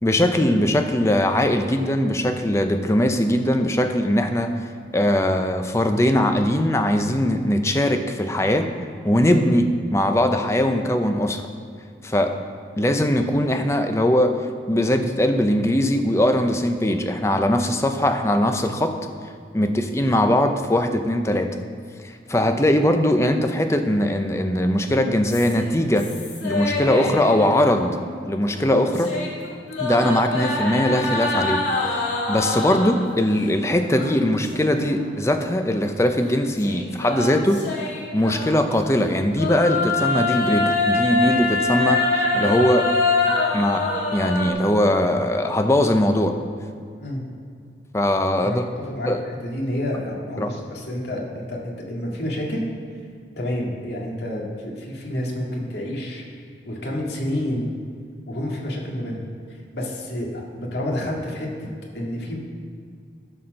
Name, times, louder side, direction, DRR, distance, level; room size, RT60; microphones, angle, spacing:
voice 1, 0.0-8.7 9.0-11.5 12.0-12.3 12.8-14.3 14.7-19.0 19.5-21.5 22.0-26.1 26.4-27.9 28.3-29.1 29.8-37.6 38.1-42.9 43.5-43.9 44.1-46.3 47.9-48.6 49.0-49.2 50.4-50.5, left 1 dB, 15° left, 6 dB, 0.6 m, -20 dB
sound 1, 25.3-28.1 28.5-33.1 33.9-34.9 35.3-35.4 36.6-38.8 39.3-44.5, left 3 dB, 85° left, 2.0 m, -25 dB
voice 2, 48.4-52.7 53.4-56.2 56.6-57.7 58.3-59.2 59.5-61.7 61.9-62.4, left 1 dB, 65° left, -2 dB, 2.0 m, -29 dB
13.0 x 4.4 x 6.4 m, 2.2 s
head